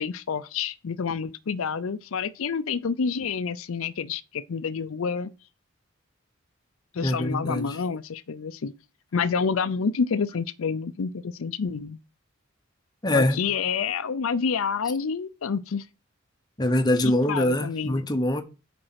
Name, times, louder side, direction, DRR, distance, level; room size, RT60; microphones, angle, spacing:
voice 1, 0.0-5.3 6.9-8.7 9.1-12.0 13.1-15.9 17.3-18.1, left 5 dB, 80° left, 0.5 m, -28 dB
voice 2, 7.0-7.8 13.0-13.4 16.6-18.4, left 1 dB, 20° left, 0.9 m, -24 dB
7.8 x 5.2 x 5.8 m
head